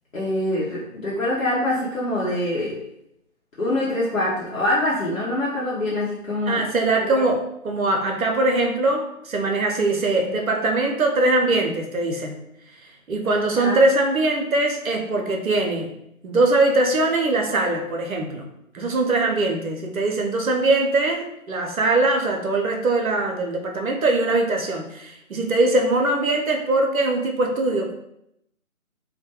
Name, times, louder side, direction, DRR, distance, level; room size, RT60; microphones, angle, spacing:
voice 1, 0.1-2.8 3.6-6.7 7.0-7.2 13.5-13.8, left 1 dB, 65° left, -8 dB, 0.8 m, -24 dB
voice 2, 6.5-12.4 13.1-15.9 16.2-18.5 18.7-27.9, right 2 dB, 70° right, 1 dB, 0.6 m, -22 dB
2.2 x 2.1 x 2.8 m, 0.79 s
figure-of-eight pair, 155°, 43 cm